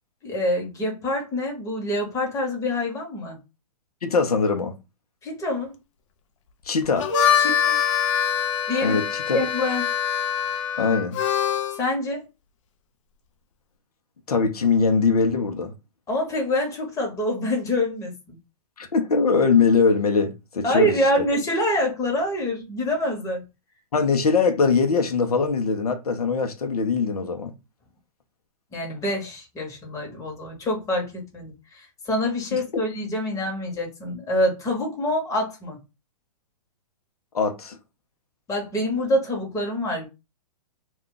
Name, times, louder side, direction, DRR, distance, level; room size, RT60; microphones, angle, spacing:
voice 1, 0.2-3.4 5.2-5.7 7.4-7.8 8.7-9.0 9.3-9.8 11.8-12.2 16.1-18.4 20.6-23.4 28.7-35.8 38.5-40.1, left 1 dB, 15° left, 1.1 m, -26 dB
voice 2, 4.0-4.7 6.7-7.1 8.8-9.4 10.8-11.2 14.3-15.7 18.8-21.0 23.9-27.5 32.5-32.6 37.3-37.8, left 5 dB, 90° left, 0.7 m, -21 dB
Harmonica, 6.8-11.8, left 8 dB, 55° left, 0.7 m, -24 dB
2.4 x 2.3 x 3.7 m
hypercardioid pair, 130°, 19 cm